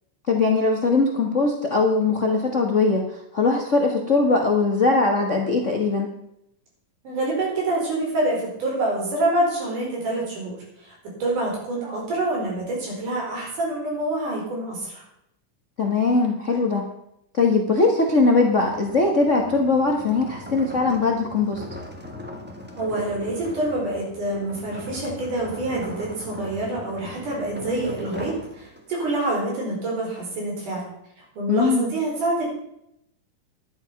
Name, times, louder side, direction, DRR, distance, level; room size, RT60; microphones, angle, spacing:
voice 1, 0.3-3.1 3.3-6.1 15.8-16.9 17.3-21.6 31.5-31.8, left 3 dB, 40° left, 1 dB, 1.0 m, -20 dB
voice 2, 7.0-15.0 22.8-30.8 31.2-32.5, right 2 dB, 80° right, -2 dB, 6.2 m, -26 dB
sound 1, 18.1-29.1, left 1 dB, 10° right, 0.6 m, -39 dB
11.5 x 11.5 x 5.9 m, 0.78 s
omnidirectional pair, 3.6 m